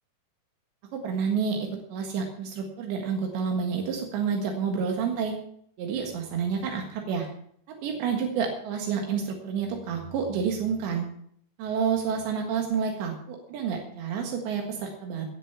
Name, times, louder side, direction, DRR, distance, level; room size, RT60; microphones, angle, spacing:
voice 1, 0.9-5.4 5.8-7.3 7.7-11.1 11.6-15.3, right 6 dB, 85° right, 2 dB, 4.0 m, -29 dB
18.5 x 6.8 x 7.1 m, 0.66 s
omnidirectional pair, 5.0 m